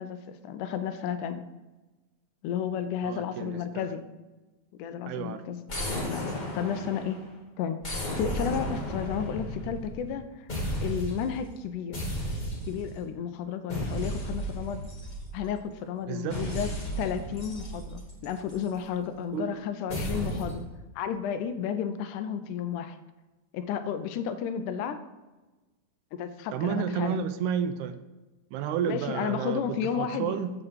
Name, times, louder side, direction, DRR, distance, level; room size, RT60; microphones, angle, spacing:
voice 1, 0.0-1.5 2.4-4.0 4.8-5.6 6.1-6.3 6.5-7.2 7.6-7.8 8.1-10.5 10.8-12.0 12.7-14.9 15.3-16.7 17.0-20.7 21.0-23.0 23.5-25.0 26.1-27.2 28.8-30.4, left 8 dB, 85° left, 10 dB, 2.1 m, -32 dB
voice 2, 3.0-3.9 5.1-5.4 16.1-16.6 19.3-19.6 26.5-28.0 28.5-30.5, right 8 dB, 85° right, 10 dB, 2.0 m, -31 dB
sound 1, 5.7-7.3 7.8-10.2 10.5-11.3 11.9-13.0 13.7-15.6 16.3-18.7 19.9-20.7, equal, 55° left, 0.4 m, -34 dB
7.4 x 6.8 x 4.7 m, 1.1 s
omnidirectional pair, 3.5 m